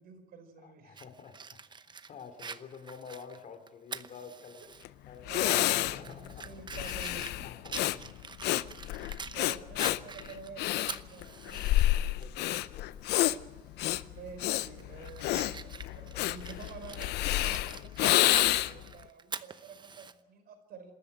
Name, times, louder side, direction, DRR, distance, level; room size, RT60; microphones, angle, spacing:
voice 1, 0.0-1.0 5.3-7.5 7.8-7.9 9.3-11.7 14.0-20.9, right 6 dB, 65° right, 7 dB, 4.8 m, -48 dB
voice 2, 0.6-4.7 5.1-5.3 5.9-6.5 7.4-8.0 12.1-12.9, left 6 dB, 50° left, 8 dB, 2.8 m, -49 dB
Fire, 1.0-4.8 5.2-5.3 5.8-9.4 9.8-11.8 12.2-12.3 13.8-14.1 14.5-20.1, right 5 dB, 25° right, 0.8 m, -45 dB
Breathing, 4.8-4.9 5.3-18.9, left 15 dB, 80° left, 0.7 m, -29 dB
26.5 x 13.5 x 8.9 m, 1.3 s
cardioid pair, 110°, 17 cm